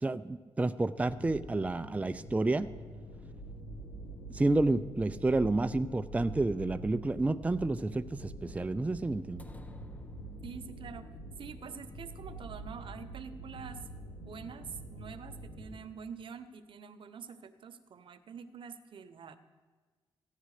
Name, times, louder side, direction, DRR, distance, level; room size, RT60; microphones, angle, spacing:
voice 1, 0.0-2.7 4.3-9.5, right 2 dB, 15° right, 12 dB, 0.4 m, -30 dB
sound 1, 1.0-15.8, right 1 dB, 85° left, 1.7 m, -46 dB
sound 2, 9.4-11.0, left 2 dB, 15° left, 1.0 m, -53 dB
voice 2, 10.4-11.1 11.4-19.4, right 6 dB, 60° right, 11 dB, 0.9 m, -46 dB
15.0 x 10.0 x 4.9 m, 1.4 s
cardioid pair, 70°, 10 cm